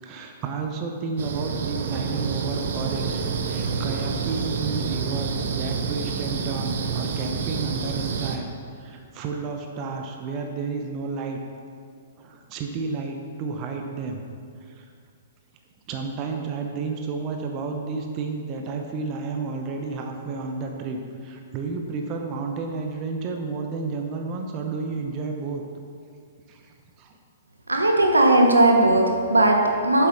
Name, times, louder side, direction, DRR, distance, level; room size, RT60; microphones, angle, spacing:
voice 1, 0.0-3.2 3.4-8.5 8.8-11.4 12.2-14.2 14.7-14.8 15.9-25.6 26.5-27.2, right 4 dB, 35° right, 3 dB, 0.9 m, -31 dB
sound 1, 1.2-8.4, right 5 dB, 60° right, 0.7 m, -28 dB
voice 2, 27.7-30.1, right 1 dB, 85° right, 2 dB, 1.1 m, -18 dB
8.6 x 7.3 x 4.1 m, 2.3 s
figure-of-eight pair, 115°, 0 cm